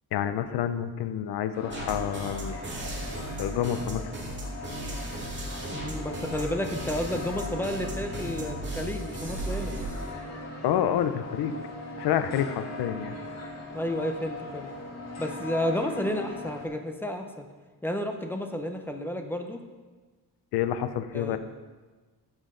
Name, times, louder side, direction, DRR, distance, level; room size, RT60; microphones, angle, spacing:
voice 1, 0.1-2.6 3.4-4.1 10.6-11.5 12.0-13.2 20.5-21.4, left 10 dB, 85° left, 10 dB, 0.7 m, -28 dB
sound 1, 1.5-16.7, left 2 dB, 45° left, 1.9 m, -40 dB
sound 2, 1.7-10.1, right 1 dB, 30° right, 2.1 m, -36 dB
voice 2, 5.7-9.7 13.7-14.7 15.2-17.5 17.8-19.6 21.1-21.4, left 1 dB, 5° left, 4 dB, 0.8 m, -31 dB
15.5 x 6.3 x 3.8 m, 1.3 s
cardioid pair, 150°, 38 cm